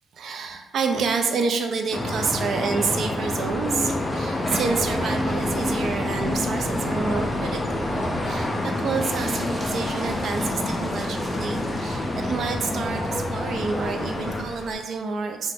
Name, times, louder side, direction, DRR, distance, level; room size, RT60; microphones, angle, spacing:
voice 1, 0.1-15.5, right 4 dB, 60° right, 5 dB, 0.4 m, -28 dB
sound 1, 1.9-14.4, left 1 dB, 20° left, 0.3 m, -27 dB
sound 2, 3.8-14.8, left 1 dB, 40° left, 0.7 m, -41 dB
sound 3, 9.0-12.2, right 1 dB, 35° right, 0.8 m, -43 dB
2.4 x 2.1 x 3.3 m, 1.0 s
cardioid pair, 90°, 0 cm